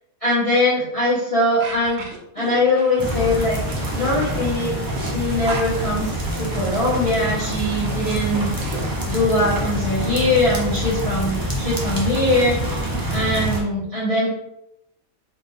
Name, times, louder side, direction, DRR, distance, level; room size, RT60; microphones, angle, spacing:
voice 1, 0.2-2.0 2.3-3.6 3.9-8.5 9.1-12.8 13.1-14.3, left 1 dB, 25° left, -9 dB, 1.1 m, -21 dB
sound 1, 1.6-9.8, right 3 dB, 70° right, 1.0 m, -37 dB
sound 2, 3.0-13.6, equal, 25° right, 0.4 m, -26 dB
3.8 x 2.7 x 3.9 m, 0.81 s
omnidirectional pair, 1.5 m